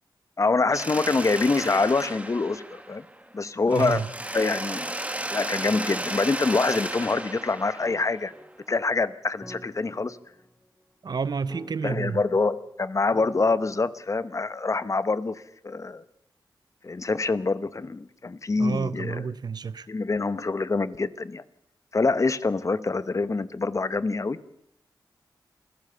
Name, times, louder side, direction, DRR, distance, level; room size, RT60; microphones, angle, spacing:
voice 1, 0.4-3.0 3.3-4.0 4.3-4.9 5.3-8.3 8.7-10.2 11.8-16.0 16.8-19.3 19.9-21.4 21.9-24.4, left 3 dB, 40° left, 1.0 m, -25 dB
Mechanisms, 0.7-3.3 3.7-8.5, right 1 dB, 15° right, 2.1 m, -34 dB
voice 2, 3.7-4.1 11.0-12.2 18.6-19.9, right 5 dB, 60° right, 0.8 m, -30 dB
sound 1, 7.8-14.5, equal, 15° left, 4.8 m, -49 dB
27.5 x 15.5 x 6.8 m
wide cardioid pair, 80°, 8 cm